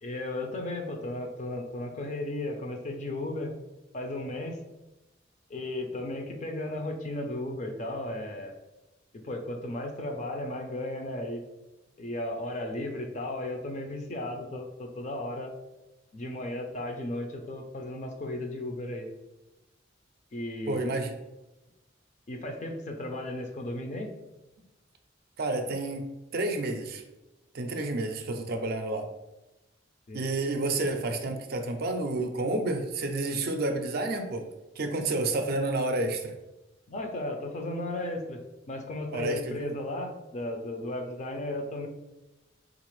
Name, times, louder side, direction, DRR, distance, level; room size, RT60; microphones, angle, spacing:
voice 1, 0.0-3.5 3.9-4.6 5.5-8.6 9.1-11.4 12.0-15.5 16.1-19.1 20.3-21.0 22.3-24.1 30.1-30.2 36.9-41.9, left 1 dB, 40° left, 3 dB, 0.5 m, -35 dB
voice 2, 20.7-21.1 25.4-27.0 27.5-29.1 30.1-34.5 34.8-36.3 39.1-39.7, right 2 dB, 50° right, 5 dB, 0.4 m, -30 dB
3.6 x 2.4 x 3.1 m, 1.0 s
head